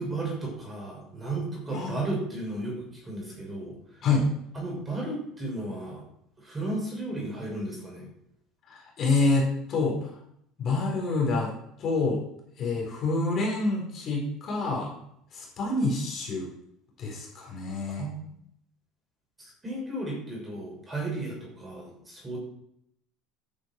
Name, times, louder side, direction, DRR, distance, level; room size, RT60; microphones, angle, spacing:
voice 1, 0.0-3.8 4.5-6.0 6.4-8.1 18.0-18.2 19.6-22.4, right 2 dB, 15° right, -3 dB, 6.5 m, -34 dB
voice 2, 8.7-10.1 10.6-11.5 11.8-12.2 12.6-15.0 15.3-16.5 17.0-18.1, left 3 dB, 35° left, -2 dB, 4.5 m, -27 dB
14.0 x 9.5 x 4.8 m, 0.75 s
cardioid pair, 150°, 0 cm